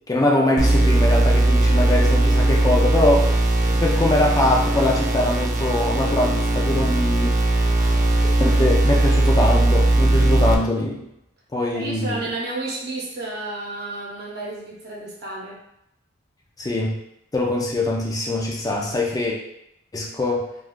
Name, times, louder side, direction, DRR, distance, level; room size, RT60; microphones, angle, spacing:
voice 1, 0.1-3.3 3.6-7.7 8.4-11.0 11.5-12.2 16.6-17.0 17.3-19.4 19.9-20.5, left 2 dB, 20° left, -2 dB, 0.4 m, -22 dB
sound 1, 0.6-10.5, right 2 dB, 40° right, 0.4 m, -19 dB
voice 2, 7.6-8.2 11.7-15.6, right 2 dB, 60° right, -3 dB, 0.8 m, -32 dB
2.4 x 2.3 x 3.5 m, 0.79 s
head